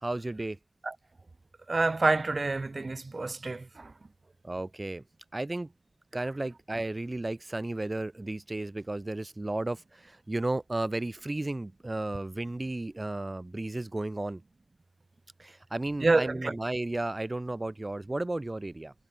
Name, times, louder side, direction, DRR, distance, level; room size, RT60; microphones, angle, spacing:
voice 1, 0.0-0.6 4.4-5.0 5.3-5.7 6.1-14.4 15.4-18.9, right 2 dB, 50° right, 4.1 m, -33 dB
voice 2, 1.7-3.9 16.0-16.5, right 3 dB, 85° right, 0.3 m, -27 dB
wide cardioid pair, 50°, 0 cm